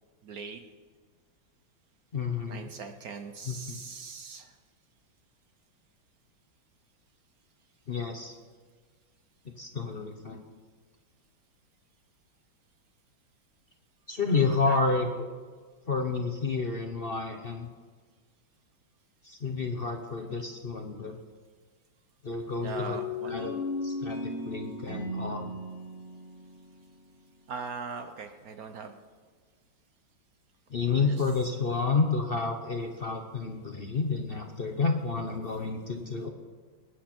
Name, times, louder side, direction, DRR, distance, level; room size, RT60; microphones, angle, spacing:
voice 1, 0.2-0.6 2.5-4.6 14.3-14.8 22.6-23.6 27.5-29.0 30.9-31.3, right 5 dB, 60° right, 7 dB, 1.0 m, -41 dB
voice 2, 2.1-2.7 3.5-3.8 7.9-8.3 9.6-10.4 14.1-15.3 15.9-17.7 19.2-21.2 22.2-23.0 23.3-23.5 23.8-24.2 24.4-25.5 30.7-36.3, left 4 dB, 45° left, 4 dB, 0.7 m, -30 dB
sound 1, 22.7-27.4, left 2 dB, 15° left, 4.0 m, -36 dB
20.5 x 9.6 x 4.4 m, 1.5 s
omnidirectional pair, 2.2 m